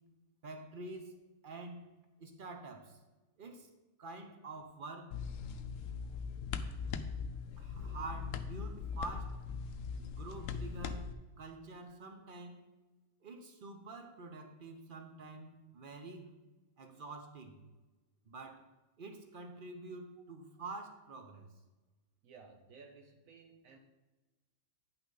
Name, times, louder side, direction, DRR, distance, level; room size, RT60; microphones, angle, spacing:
voice 1, 0.4-1.2 1.4-1.9 2.2-3.0 3.4-3.7 4.0-5.1 6.8-6.9 7.6-9.4 10.0-12.6 13.2-16.4 16.8-17.6 18.2-18.7 19.0-21.5, right 3 dB, 40° right, 5 dB, 0.9 m, -47 dB
sound 1, 5.1-11.1, left 5 dB, 70° left, 0.9 m, -40 dB
voice 2, 22.2-23.8, right 4 dB, 70° right, 4 dB, 1.2 m, -56 dB
9.2 x 5.8 x 3.9 m, 1.2 s
omnidirectional pair, 1.5 m